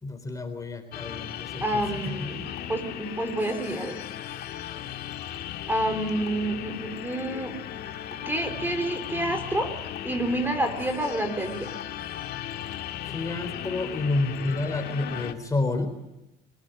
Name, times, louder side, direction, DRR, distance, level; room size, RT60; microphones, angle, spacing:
voice 1, 0.0-2.3 13.1-15.9, left 2 dB, 20° left, 7 dB, 3.8 m, -29 dB
sound 1, 0.9-15.3, left 11 dB, 70° left, 2.0 m, -36 dB
voice 2, 1.6-4.0 5.7-7.6 8.1-9.7 10.0-11.7, right 1 dB, 10° right, 7 dB, 4.1 m, -29 dB
25.0 x 18.5 x 9.1 m, 0.93 s
cardioid pair, 110°, 17 cm